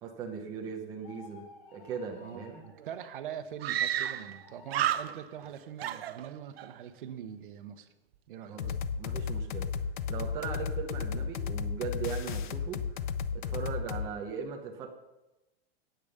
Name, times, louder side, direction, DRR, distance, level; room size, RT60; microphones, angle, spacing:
voice 1, 0.0-2.6 8.5-9.7 10.1-12.8 13.3-14.9, right 6 dB, 10° right, 1 dB, 0.6 m, -39 dB
sound 1, 1.0-2.8 4.1-5.1, left 5 dB, 35° left, 1.3 m, -54 dB
voice 2, 2.2-7.9 8.3-8.6, right 9 dB, 60° right, 10 dB, 1.1 m, -43 dB
Screaming, 2.5-2.6 2.8-2.9 3.6-4.4 4.7-5.5 5.8-6.7, right 11 dB, 80° right, 0.8 m, -31 dB
sound 2, 8.6-14.1, left 6 dB, 55° left, 0.7 m, -33 dB
8.9 x 8.7 x 6.7 m, 0.98 s
supercardioid pair, 180°, 30 cm